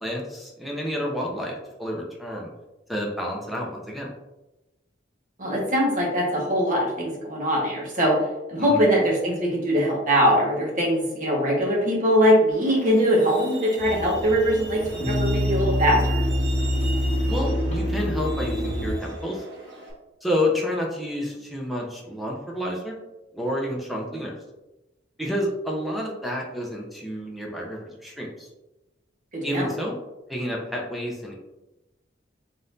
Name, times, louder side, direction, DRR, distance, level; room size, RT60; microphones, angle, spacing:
voice 1, 0.0-2.5 2.9-4.1 8.7-8.8 17.3-19.5 20.2-22.9 23.3-24.4 25.2-28.5 29.4-30.0 30.3-31.3, left 1 dB, ahead, -2 dB, 0.5 m, -29 dB
voice 2, 5.4-8.2 8.5-16.2 29.3-29.7, equal, 45° right, -3 dB, 1.3 m, -22 dB
Truck, 12.5-19.9, right 3 dB, 75° right, 1.2 m, -40 dB
sound 1, 13.8-18.9, equal, 40° left, 0.8 m, -25 dB
3.9 x 3.8 x 2.6 m, 0.99 s
head